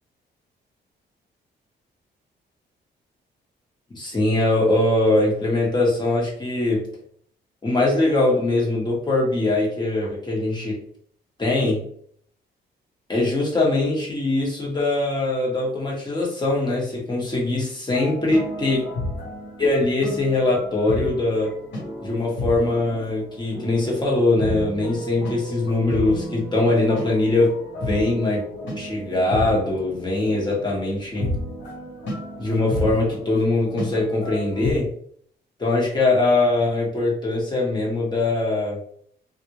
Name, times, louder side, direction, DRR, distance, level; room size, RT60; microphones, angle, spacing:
voice 1, 3.9-6.9 7.6-10.8 11.4-11.8 13.1-18.8 19.6-21.5 22.0-27.5 27.8-28.4 28.7-31.3 32.4-34.9 35.6-38.8, left 2 dB, 25° left, -4 dB, 1.4 m, -22 dB
sound 1, 17.9-34.7, left 1 dB, 85° left, 1.4 m, -32 dB
3.4 x 2.5 x 3.0 m, 0.63 s
cardioid pair, 110°, 19 cm